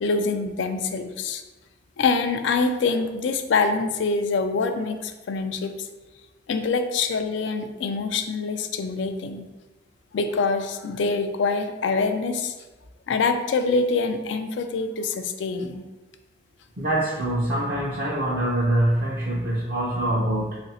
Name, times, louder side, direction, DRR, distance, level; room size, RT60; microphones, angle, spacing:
voice 1, 0.0-1.4 2.0-5.9 6.5-9.5 10.1-12.5 13.1-15.8, left 4 dB, 85° left, 7 dB, 0.4 m, -25 dB
voice 2, 16.8-20.6, right 1 dB, 50° right, -5 dB, 0.5 m, -24 dB
3.1 x 2.5 x 4.1 m, 1.1 s
head